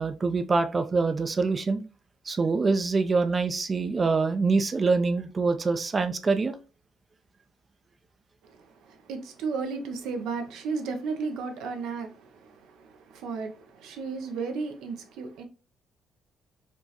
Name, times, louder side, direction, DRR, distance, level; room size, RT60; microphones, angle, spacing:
voice 1, 0.0-1.8 2.3-6.6, right 4 dB, 35° right, 0.4 m, -25 dB
voice 2, 8.4-15.4, right 4 dB, 90° right, 0.6 m, -34 dB
4.4 x 2.0 x 2.8 m
cardioid pair, 90°, 0 cm